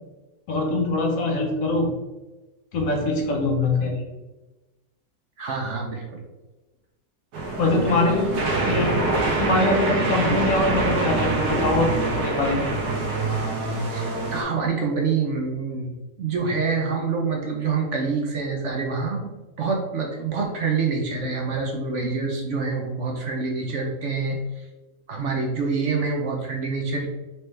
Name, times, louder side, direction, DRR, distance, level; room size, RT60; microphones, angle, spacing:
voice 1, 0.5-1.9 2.7-4.0 7.6-9.0 9.4-12.7, left 2 dB, 65° left, 1 dB, 1.2 m, -23 dB
voice 2, 5.4-6.2 13.9-24.6 25.1-27.1, right 4 dB, 65° right, 0 dB, 0.8 m, -26 dB
sound 1, 7.3-14.4, right 2 dB, 85° right, 1.4 m, -25 dB
4.4 x 3.1 x 3.1 m, 1.1 s
omnidirectional pair, 1.6 m